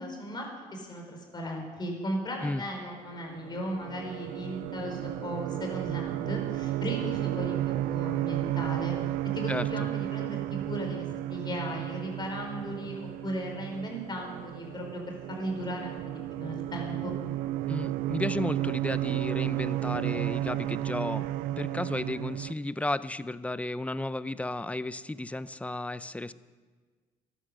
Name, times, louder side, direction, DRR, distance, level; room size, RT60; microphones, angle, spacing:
voice 1, 0.0-9.0 9.3-10.4 10.7-12.9 13.2-17.1, equal, 30° left, 2 dB, 4.6 m, -36 dB
sound 1, 3.1-22.5, right 15 dB, 80° right, 0.5 m, -33 dB
voice 2, 9.5-9.9 17.7-21.3 21.6-26.3, left 2 dB, 10° left, 15 dB, 0.5 m, -33 dB
14.5 x 11.0 x 6.6 m, 1.4 s
supercardioid pair, 85°, 14 cm